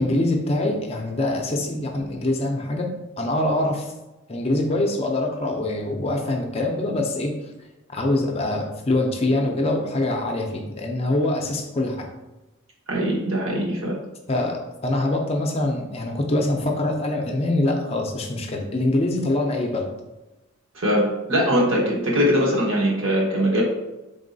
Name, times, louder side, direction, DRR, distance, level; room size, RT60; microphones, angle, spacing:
voice 1, 0.0-2.9 3.2-3.9 4.3-7.4 7.9-12.1 14.3-19.9, left 2 dB, 30° left, 2 dB, 0.4 m, -24 dB
voice 2, 12.9-14.0 20.7-23.6, equal, 70° right, -3 dB, 1.2 m, -21 dB
4.0 x 3.6 x 2.6 m, 1.0 s
head